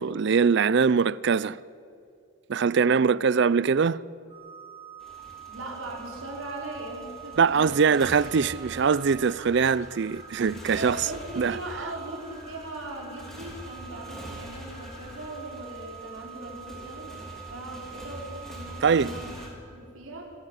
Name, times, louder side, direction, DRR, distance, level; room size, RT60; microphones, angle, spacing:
voice 1, 0.0-1.6 2.5-4.0 7.4-11.0 11.4-11.6 18.8-19.1, right 5 dB, 55° right, 0.4 m, -22 dB
voice 2, 2.8-3.4 5.4-8.1 10.7-20.3, right 1 dB, 80° right, 4.9 m, -39 dB
sound 1, 4.3-19.5, right 8 dB, 25° right, 6.9 m, -46 dB
Motorcycle, 5.0-19.5, equal, ahead, 3.7 m, -45 dB
26.5 x 13.5 x 10.0 m
head